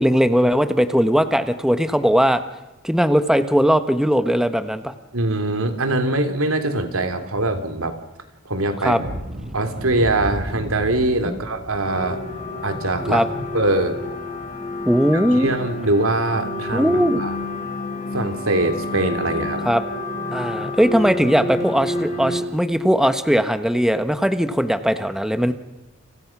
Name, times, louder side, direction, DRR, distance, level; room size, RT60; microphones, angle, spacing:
voice 1, 0.0-2.4 2.8-4.9 8.8-9.0 11.2-11.4 13.1-13.3 14.9-15.5 16.7-17.2 19.6-19.8 20.3-25.5, equal, ahead, 9 dB, 1.2 m, -19 dB
voice 2, 5.1-8.0 8.4-9.0 9.5-12.2 12.6-13.2 13.5-14.0 15.1-17.4 18.1-19.6, right 2 dB, 80° right, 7 dB, 3.3 m, -22 dB
sound 1, 8.9-15.7 16.1-16.2 16.6-16.8 17.3-17.4, equal, 55° right, 6.4 m, -36 dB
sound 2, 11.8-22.4, left 2 dB, 40° left, 6.6 m, -29 dB
30.0 x 29.0 x 6.1 m, 1.0 s
head